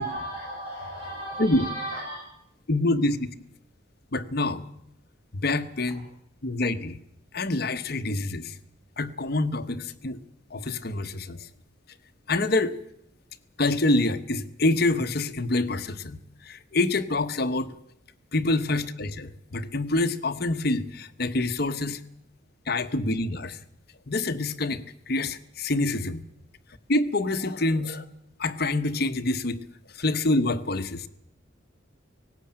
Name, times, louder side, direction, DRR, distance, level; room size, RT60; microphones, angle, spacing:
voice 1, 0.0-2.2, right 1 dB, 30° right, -5 dB, 7.6 m, -34 dB
voice 2, 2.7-3.3 4.1-4.6 5.3-6.0 6.4-7.0 7.3-8.6 9.0-10.2 10.5-11.5 12.3-12.8 13.6-17.7 18.3-22.0 22.7-23.6 24.1-26.2 26.9-28.1 28.4-29.6 29.9-31.1, left 2 dB, 55° left, 10 dB, 1.2 m, -26 dB
18.5 x 17.5 x 8.8 m, 0.77 s
head